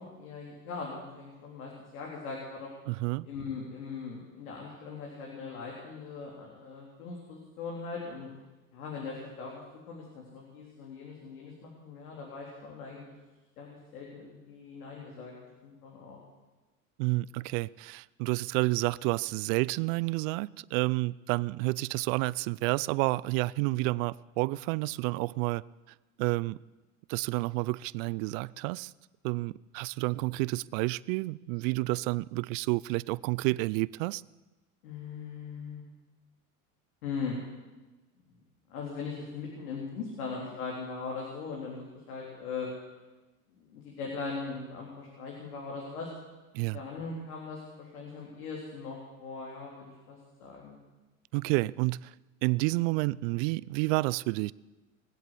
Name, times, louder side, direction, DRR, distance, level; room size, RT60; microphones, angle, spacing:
voice 1, 0.0-2.7 3.2-8.3 8.7-13.1 13.6-15.3 15.6-16.2 34.8-35.8 37.0-37.4 38.7-42.7 43.5-46.1 46.7-50.8, left 4 dB, 80° left, 3.7 m, -40 dB
voice 2, 2.9-3.3 17.0-25.6 26.2-26.6 27.1-28.9 29.2-34.2 46.5-46.8 51.3-52.1 52.4-54.5, right 22 dB, 60° right, 0.5 m, -30 dB
21.0 x 8.2 x 8.2 m
hypercardioid pair, 85°, 44 cm